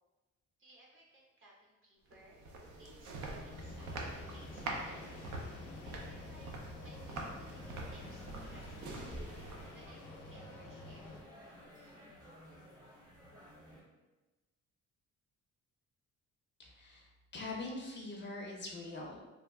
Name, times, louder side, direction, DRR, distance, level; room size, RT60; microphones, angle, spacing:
voice 1, 0.6-5.3 5.8-9.4 9.7-11.2, right 1 dB, 45° right, -4 dB, 0.9 m, -62 dB
sound 1, 2.1-9.9, right 2 dB, 70° right, 0.6 m, -45 dB
sound 2, 3.5-11.2, left 2 dB, 90° left, 0.5 m, -49 dB
sound 3, 7.5-13.8, equal, 15° right, 0.7 m, -54 dB
voice 2, 16.6-19.2, left 2 dB, 40° left, -1 dB, 0.5 m, -43 dB
3.1 x 2.2 x 2.3 m, 1.1 s
cardioid pair, 90°, 30 cm